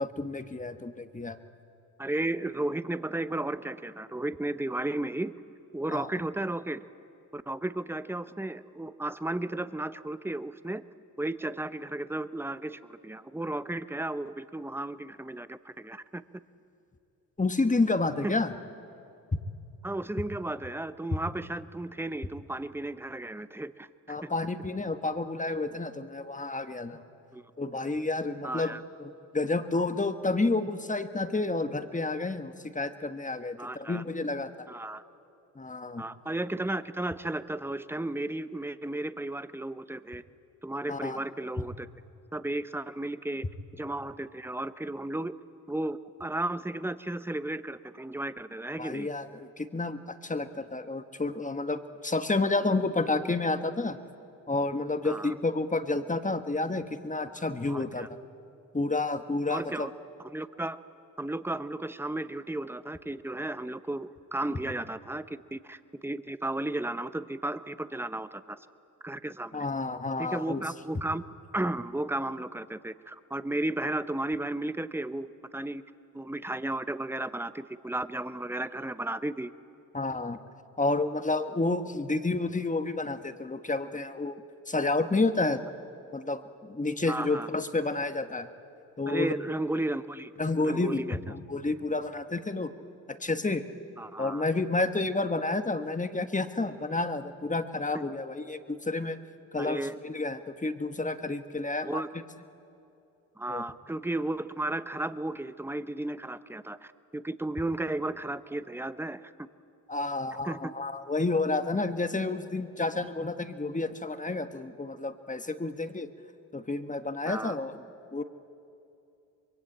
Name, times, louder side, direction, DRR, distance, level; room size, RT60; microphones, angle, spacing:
voice 1, 0.0-1.4 5.9-6.1 17.4-18.5 24.1-27.0 27.6-34.5 35.5-36.0 40.9-41.2 48.8-54.0 54.5-58.1 58.7-59.9 69.5-70.6 79.9-80.4 80.8-85.6 86.1-88.5 89.0-89.3 90.4-92.7 93.1-93.6 94.2-99.2 99.5-102.0 103.5-103.6 109.9-116.1 116.5-117.8 118.1-118.2, left 3 dB, 20° left, 9 dB, 1.4 m, -30 dB
voice 2, 2.0-5.3 5.7-6.8 7.3-10.8 11.2-16.2 18.2-18.4 19.8-24.3 27.3-27.4 28.4-28.8 33.6-34.0 34.7-35.0 36.0-40.2 40.6-41.9 42.3-43.5 43.7-45.4 45.7-49.1 55.0-55.3 57.7-58.1 59.5-59.9 60.3-60.8 61.2-68.6 69.0-69.7 70.2-71.2 71.5-75.8 76.1-79.5 87.1-87.5 89.1-90.3 90.6-91.2 94.0-94.4 97.9-98.0 99.6-100.0 101.8-102.1 103.4-109.5 110.4-110.7 117.2-117.6, right 2 dB, 5° right, 13 dB, 0.8 m, -34 dB
24.5 x 22.0 x 8.7 m, 2.7 s
cardioid pair, 65°, 37 cm